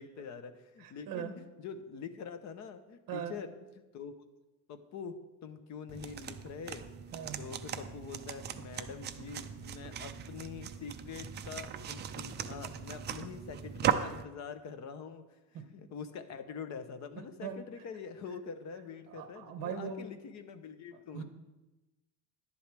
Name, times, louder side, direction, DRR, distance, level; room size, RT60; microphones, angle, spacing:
voice 1, 0.0-3.5 3.9-4.2 4.7-5.2 5.4-15.4 15.7-21.2, left 6 dB, 40° left, 10 dB, 0.8 m, -45 dB
voice 2, 0.8-1.3 3.1-3.4 7.1-7.4 15.5-15.6 17.1-17.6 19.1-20.1 20.9-21.2, right 7 dB, 50° right, 6 dB, 1.5 m, -40 dB
sound 1, 5.9-14.2, right 8 dB, 25° right, 0.3 m, -38 dB
11.5 x 11.0 x 3.4 m, 1.1 s
cardioid pair, 170°, 43 cm